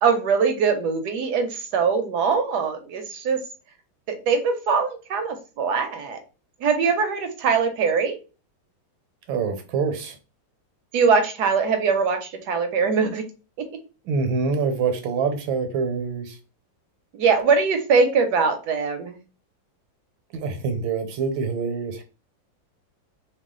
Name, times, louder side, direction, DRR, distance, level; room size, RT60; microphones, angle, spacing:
voice 1, 0.0-3.4 4.1-6.2 6.6-8.1 10.9-13.3 17.1-19.2, right 5 dB, 70° right, 1.1 m, -22 dB
voice 2, 9.3-10.2 14.0-16.4 20.3-22.0, right 5 dB, 85° right, 1.5 m, -25 dB
3.1 x 2.3 x 3.6 m
omnidirectional pair, 2.1 m